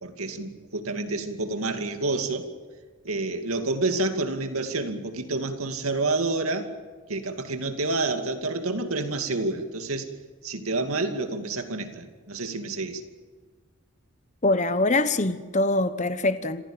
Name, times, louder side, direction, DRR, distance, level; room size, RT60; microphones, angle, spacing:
voice 1, 0.0-2.4 3.0-6.7 7.1-10.1 10.4-13.0, right 2 dB, 85° right, 2.4 m, -28 dB
voice 2, 14.4-16.6, left 2 dB, 35° left, 1.0 m, -23 dB
26.5 x 16.0 x 8.9 m
head